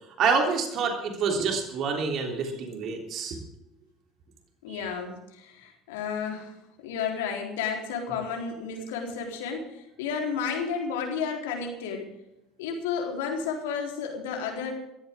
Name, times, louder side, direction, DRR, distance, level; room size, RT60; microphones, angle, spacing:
voice 1, 0.2-3.4, right 5 dB, 45° right, 2 dB, 3.4 m, -27 dB
voice 2, 4.6-12.1 12.6-14.7, left 6 dB, 65° left, 1 dB, 3.8 m, -32 dB
19.5 x 14.5 x 3.7 m, 0.86 s
figure-of-eight pair, 65°, 0 cm